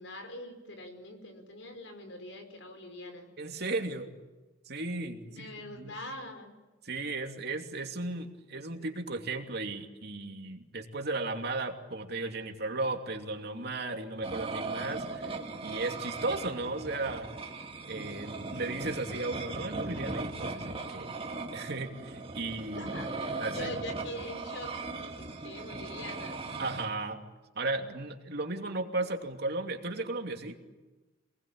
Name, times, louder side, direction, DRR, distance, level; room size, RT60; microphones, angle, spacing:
voice 1, 0.0-3.3 5.3-6.5 22.7-26.4, left 1 dB, 85° left, 6 dB, 5.3 m, -43 dB
voice 2, 3.4-4.1 4.7-6.0 6.8-17.3 17.8-21.1 21.5-22.9 23.4-23.7 26.6-27.2 27.5-30.6, right 2 dB, 60° right, 3 dB, 2.8 m, -35 dB
sound 1, 14.2-26.9, right 3 dB, 30° right, 2.3 m, -38 dB
27.5 x 20.5 x 8.9 m, 1.2 s
head